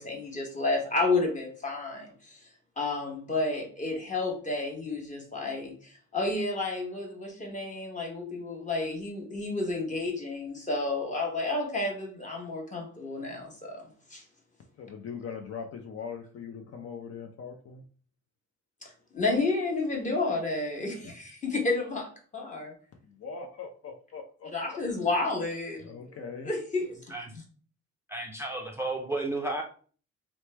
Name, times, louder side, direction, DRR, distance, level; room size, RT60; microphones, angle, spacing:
voice 1, 0.0-2.4 2.8-13.8 14.1-14.2 19.1-22.7 24.5-26.0 26.4-27.0, left 3 dB, 25° left, 1.1 m, -31 dB
voice 2, 14.8-17.8 23.0-24.8 25.8-26.5, left 6 dB, 50° left, 0.5 m, -41 dB
voice 3, 28.1-29.6, right 2 dB, 10° right, 0.4 m, -32 dB
3.0 x 2.1 x 3.2 m
cardioid pair, 95°, 30 cm